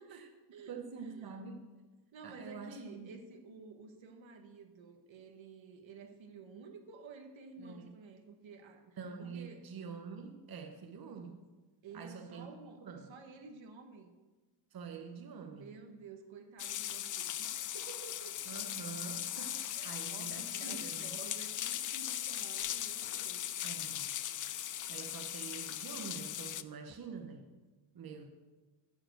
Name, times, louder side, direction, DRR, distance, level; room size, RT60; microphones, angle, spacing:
voice 1, 0.0-1.4 2.1-8.8 9.2-9.7 11.8-14.1 15.5-18.4 19.7-23.5 23.8-24.0, right 4 dB, 70° right, 5 dB, 1.3 m, -52 dB
voice 2, 0.7-1.7 2.2-3.1 7.6-8.0 9.0-11.4 11.9-12.5 12.8-13.1 14.7-15.7 18.5-21.2 23.6-24.1 24.9-27.6 27.9-28.3, right 5 dB, 50° right, 5 dB, 1.0 m, -46 dB
sound 1, 16.6-26.6, left 11 dB, 45° left, 0.4 m, -39 dB
9.4 x 4.9 x 7.8 m, 1.3 s
cardioid pair, 80°, 47 cm